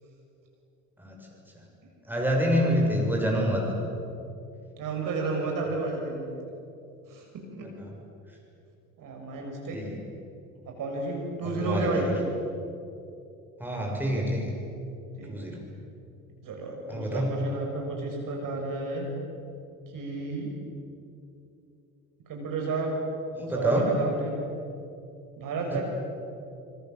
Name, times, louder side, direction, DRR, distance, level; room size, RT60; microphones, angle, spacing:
voice 1, 2.1-3.7 9.7-10.0 11.4-12.2 13.6-14.6 15.3-15.7 16.9-17.4 23.3-23.9 25.7-25.8, equal, 5° right, -1 dB, 6.9 m, -27 dB
voice 2, 4.8-6.3 7.1-7.7 9.0-9.8 10.6-12.1 15.2-15.5 16.4-19.1 19.9-20.5 22.3-22.9 23.5-24.4 25.4-25.8, right 3 dB, 50° right, 0 dB, 6.7 m, -32 dB
26.5 x 23.5 x 7.8 m, 2.7 s
figure-of-eight pair, 60°, 42 cm